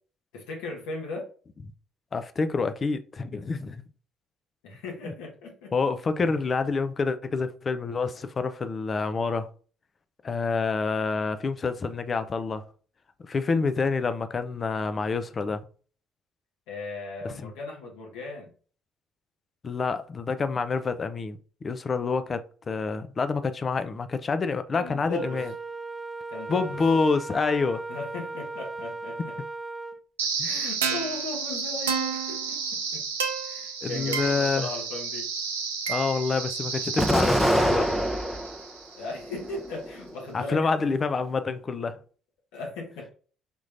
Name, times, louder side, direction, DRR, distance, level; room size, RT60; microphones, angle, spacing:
voice 1, 0.3-1.3 4.6-5.7 16.7-18.5 24.7-25.4 26.3-26.7 27.9-29.3 30.4-33.0 33.4-35.3 38.9-40.9 42.5-43.1, left 3 dB, 75° left, 1.2 m, -37 dB
voice 2, 2.1-3.8 5.0-5.1 5.7-9.5 10.2-12.6 13.2-15.6 17.2-17.5 19.6-25.5 26.5-27.8 30.4-30.5 33.8-34.7 35.9-37.9 40.3-42.0, left 4 dB, 40° left, 0.5 m, -27 dB
Wind instrument woodwind instrument, 25.1-30.0, right 3 dB, 20° right, 0.4 m, -37 dB
sound 1, 30.2-39.2, right 6 dB, 90° right, 0.5 m, -31 dB
Explosion, 37.0-38.6 39.2-40.0, equal, 5° left, 0.7 m, -25 dB
5.2 x 3.1 x 2.5 m
hypercardioid pair, 55°, 0 cm